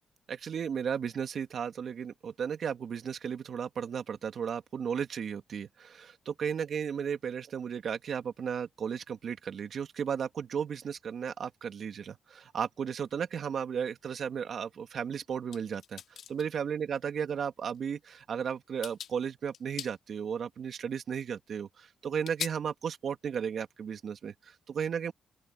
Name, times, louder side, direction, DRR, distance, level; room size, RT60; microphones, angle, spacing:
voice 1, 0.3-16.0 16.3-25.1, right 7 dB, 60° right, 2.2 m, -34 dB
sound 1, 15.5-16.5 17.7-17.8 18.3-18.5 18.8-19.1 19.5-19.9 20.9-21.0 22.2-22.5, left 9 dB, 75° left, 2.7 m, -40 dB
open air
cardioid pair, 85°, 0 cm